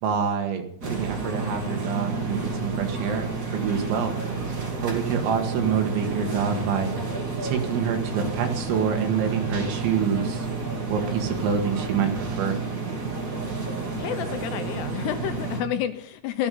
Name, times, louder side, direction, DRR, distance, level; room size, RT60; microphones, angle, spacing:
voice 1, 0.0-4.1 4.5-6.9 7.4-10.5 10.9-12.6, right 7 dB, 80° right, 4 dB, 4.2 m, -26 dB
sound 1, 0.8-15.6, right 4 dB, 30° right, 1.8 m, -30 dB
voice 2, 13.9-16.5, left 10 dB, 75° left, 9 dB, 2.6 m, -30 dB
14.0 x 13.0 x 5.4 m, 0.66 s
omnidirectional pair, 5.3 m